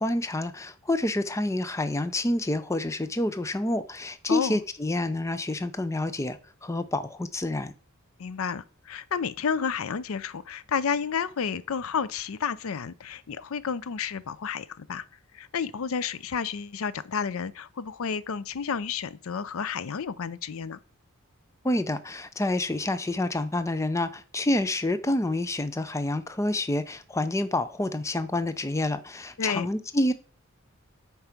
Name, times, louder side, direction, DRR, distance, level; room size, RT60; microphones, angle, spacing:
voice 1, 0.0-7.7 21.6-30.1, left 1 dB, 15° left, 0.5 m, -28 dB
voice 2, 4.3-4.6 8.2-15.0 15.3-20.8 29.4-29.7, left 6 dB, 70° left, 0.5 m, -31 dB
8.6 x 4.6 x 5.9 m
head